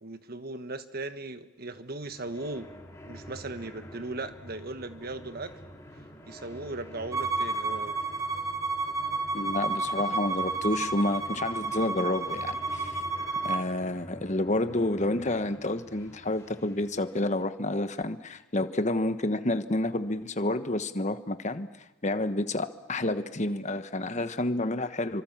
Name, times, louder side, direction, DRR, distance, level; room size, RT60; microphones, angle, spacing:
voice 1, 0.0-2.7 3.1-5.5 6.3-8.0, right 2 dB, 50° right, 10 dB, 1.4 m, -38 dB
sound 1, 1.7-17.5, equal, 15° left, 3.9 m, -48 dB
Bowed string instrument, 7.1-13.6, right 3 dB, 15° right, 1.7 m, -31 dB
voice 2, 9.3-13.0 13.4-21.7 22.0-25.2, left 2 dB, 35° left, 10 dB, 1.3 m, -29 dB
27.5 x 25.0 x 7.4 m, 0.98 s
head